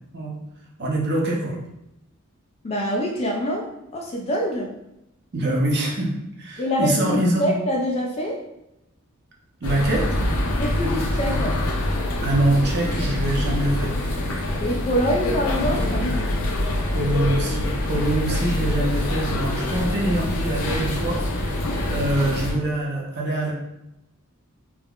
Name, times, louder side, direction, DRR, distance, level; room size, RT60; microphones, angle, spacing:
voice 1, 0.8-1.6 5.3-6.1 6.4-7.5 9.6-10.1 12.2-14.0 16.9-21.2 21.9-23.5, right 1 dB, 50° right, -1 dB, 0.6 m, -24 dB
voice 2, 2.6-4.7 6.6-8.4 10.5-11.5 14.6-16.1, equal, 30° left, -1 dB, 0.3 m, -25 dB
sound 1, 9.6-22.5, left 1 dB, 85° left, 0.5 m, -25 dB
3.4 x 2.1 x 2.3 m, 0.85 s
head